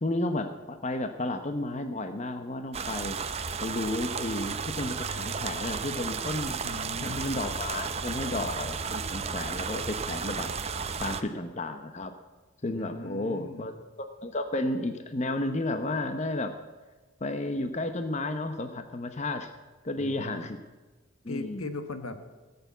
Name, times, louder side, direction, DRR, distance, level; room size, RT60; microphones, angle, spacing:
voice 1, 0.0-3.2 3.6-6.6 7.0-10.5 11.0-12.1 12.6-13.7 14.0-16.5 17.2-19.5 19.8-20.6 21.2-21.7, left 2 dB, 30° left, 8 dB, 0.8 m, -32 dB
sound 1, 2.7-11.2, right 5 dB, 30° right, 0.6 m, -33 dB
voice 2, 6.6-7.3 12.7-13.7 20.0-20.4 21.3-22.2, left 2 dB, 90° left, 8 dB, 1.4 m, -39 dB
18.0 x 6.9 x 8.1 m, 1.3 s
head